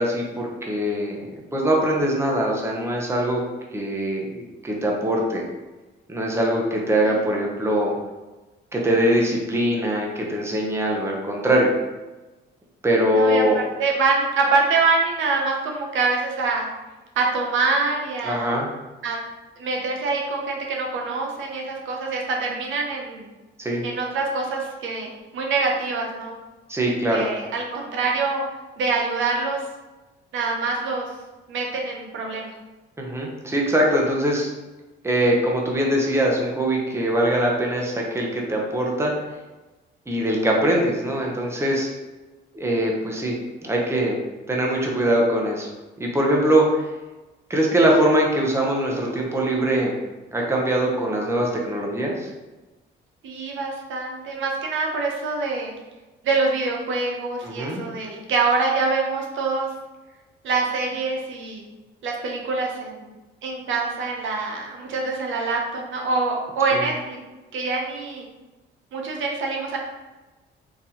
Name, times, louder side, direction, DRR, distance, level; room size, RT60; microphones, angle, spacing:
voice 1, 0.0-3.4 3.7-5.4 6.1-7.9 8.7-11.7 12.8-13.6 18.2-18.7 23.6-23.9 26.7-27.3 33.0-34.5 35.0-39.1 40.1-41.9 42.5-44.2 44.5-45.7 46.0-46.8 47.5-50.0 50.3-52.3 57.4-57.8 66.7-66.8, right 1 dB, 15° right, -1 dB, 0.8 m, -22 dB
voice 2, 13.1-16.7 17.2-18.5 19.0-19.2 19.6-23.3 23.8-26.4 27.1-28.4 28.8-29.6 30.3-31.1 31.5-32.5 53.2-55.7 56.2-59.7 60.4-61.6 62.0-63.1 63.4-67.2 67.5-68.3 68.9-69.8, right 3 dB, 75° right, 0 dB, 0.7 m, -25 dB
4.0 x 2.5 x 2.9 m, 1.1 s
cardioid pair, 90°, 20 cm